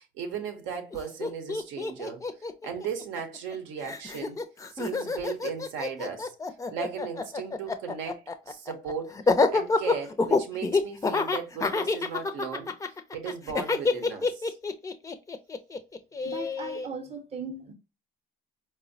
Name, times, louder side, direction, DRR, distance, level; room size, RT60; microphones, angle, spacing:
voice 1, 0.0-4.4 4.7-6.3 6.7-12.7 13.1-14.6, right 7 dB, 85° right, 0.7 m, -37 dB
Laughter, 0.9-1.0 1.2-3.5 3.8-16.9, left 3 dB, 15° left, 0.4 m, -28 dB
voice 2, 16.2-17.7, right 4 dB, 35° right, 0.6 m, -38 dB
4.2 x 2.0 x 2.5 m
cardioid pair, 95°, 19 cm